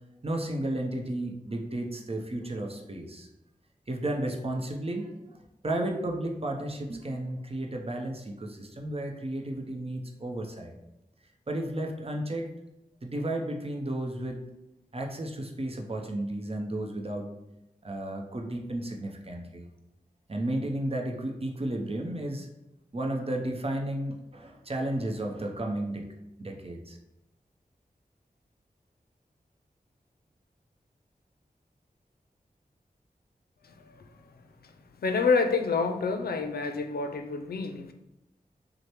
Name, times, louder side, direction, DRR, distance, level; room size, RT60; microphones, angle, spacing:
voice 1, 0.2-3.3 3.9-5.4 5.6-10.8 11.5-12.5 13.0-14.4 14.9-17.3 17.8-19.6 20.3-22.5 22.9-26.0 26.4-27.0, right 1 dB, 40° right, 1 dB, 0.7 m, -33 dB
voice 2, 33.6-34.0 34.6-34.7 35.0-37.9, left 4 dB, 85° left, 6 dB, 0.4 m, -28 dB
6.2 x 2.1 x 3.0 m, 0.91 s
wide cardioid pair, 60°, 16 cm